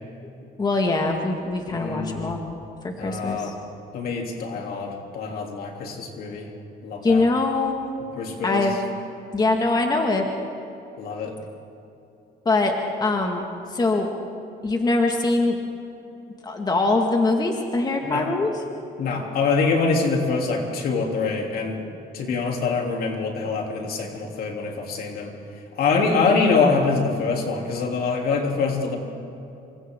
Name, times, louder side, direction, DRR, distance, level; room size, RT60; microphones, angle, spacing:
voice 1, 0.6-2.4 2.8-3.5 7.0-7.8 8.4-8.8 9.3-10.3 12.5-12.7 13.0-13.4 13.7-14.1 14.6-15.6 16.4-18.6, left 3 dB, 25° left, 2 dB, 2.1 m, -22 dB
voice 2, 1.7-2.4 3.0-3.5 3.9-6.5 6.8-7.2 8.2-8.6 11.0-11.4 18.0-18.3 19.0-21.8 22.1-25.3 25.8-29.0, left 4 dB, 65° left, 1 dB, 3.3 m, -24 dB
28.0 x 24.5 x 3.9 m, 2.8 s
cardioid pair, 110°, 17 cm